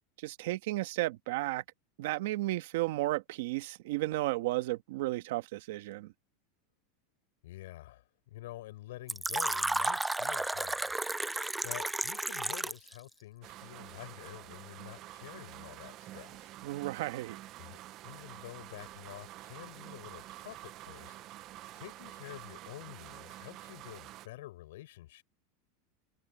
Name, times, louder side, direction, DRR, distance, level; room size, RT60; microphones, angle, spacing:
voice 1, 0.2-1.6 2.0-6.1 16.6-17.4, right 18 dB, 65° right, 1.3 m, -33 dB
voice 2, 7.4-10.9 11.6-16.5 17.6-17.8 18.0-21.2 21.7-25.2, left 16 dB, 75° left, 7.1 m, -48 dB
Fill (with liquid), 9.1-12.9, right 2 dB, 5° right, 0.4 m, -32 dB
sound 1, 13.4-24.3, right 15 dB, 35° right, 0.7 m, -48 dB
supercardioid pair, 165°, 0 cm